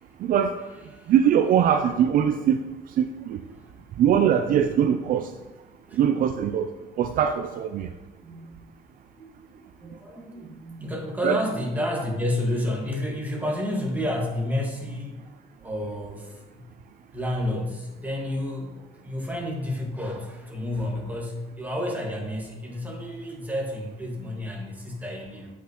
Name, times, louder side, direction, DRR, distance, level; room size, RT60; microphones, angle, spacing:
voice 1, 0.2-0.5 1.1-3.4 4.0-5.3 5.9-6.7 7.0-7.9 11.2-11.4, right 9 dB, 55° right, 8 dB, 0.4 m, -22 dB
voice 2, 8.2-8.6 9.1-15.2 15.6-16.7 17.1-25.5, left 1 dB, 10° right, -1 dB, 1.6 m, -30 dB
8.2 x 6.0 x 3.0 m, 1.1 s
cardioid pair, 110°, 17 cm